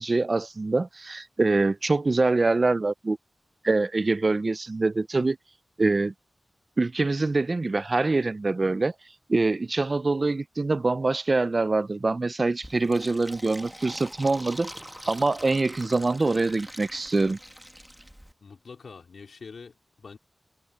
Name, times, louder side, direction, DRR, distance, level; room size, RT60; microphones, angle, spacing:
voice 1, 0.0-3.2 3.6-5.4 5.8-6.1 6.8-8.9 9.3-14.7 15.1-17.4, right 3 dB, 45° right, 0.5 m, -24 dB
Fill (with liquid), 12.6-18.3, equal, 5° right, 1.3 m, -43 dB
voice 2, 18.4-20.2, left 5 dB, 80° left, 4.4 m, -45 dB
cardioid pair, 55°, 0 cm